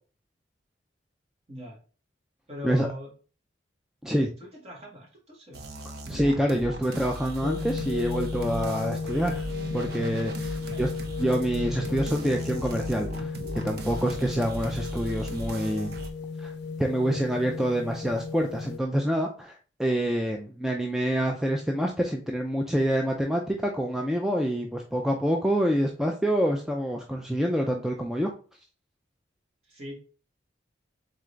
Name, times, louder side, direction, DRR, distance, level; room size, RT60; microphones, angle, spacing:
voice 1, 2.5-3.1 4.6-5.6 10.5-10.8 29.7-30.0, left 1 dB, 35° right, -3 dB, 1.6 m, -41 dB
sound 1, 5.5-16.1, right 1 dB, 55° right, 0.6 m, -37 dB
voice 2, 6.1-9.4 9.7-10.9 11.2-13.4 13.6-16.0 16.4-28.3, equal, 5° right, 1 dB, 0.3 m, -27 dB
sound 2, 7.4-18.8, left 4 dB, 60° left, 0.5 m, -34 dB
3.8 x 3.7 x 3.2 m, 0.38 s
head